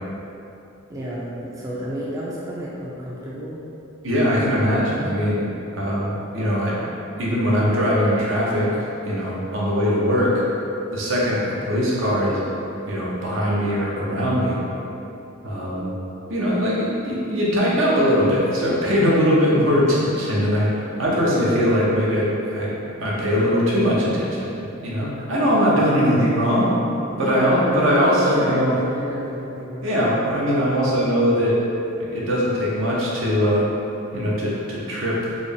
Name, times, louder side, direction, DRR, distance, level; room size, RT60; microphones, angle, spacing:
voice 1, 0.9-3.6 27.1-30.0, equal, 15° right, -6 dB, 0.3 m, -30 dB
voice 2, 4.0-5.5 5.7-6.7 7.2-8.7 9.0-10.3 10.9-12.4 12.9-14.6 15.4-15.9 16.3-22.3 22.5-22.7 23.0-24.5 24.8-26.7 27.2-28.7 29.8-31.6 32.1-33.6 34.1-35.4, equal, 70° right, -6 dB, 0.8 m, -21 dB
3.9 x 2.0 x 3.5 m, 2.8 s
head